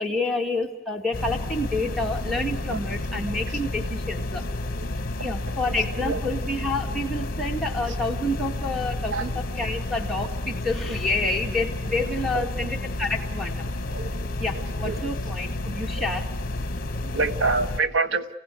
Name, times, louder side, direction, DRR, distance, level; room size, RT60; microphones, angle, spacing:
voice 1, 0.0-4.4 5.2-9.3 9.6-13.7 14.4-16.3, left 2 dB, ahead, -2 dB, 2.5 m, -28 dB
sound 1, 1.1-17.8, left 2 dB, 50° left, 1.2 m, -31 dB
voice 2, 3.1-3.6 4.8-4.9 5.2-5.7 6.0-6.2 7.7-8.0 9.1-9.3 12.3-12.5 13.9-14.1 14.5-15.0 16.0-16.1 16.9-18.3, right 3 dB, 70° right, 7 dB, 1.4 m, -29 dB
29.0 x 17.0 x 9.5 m, 0.93 s
head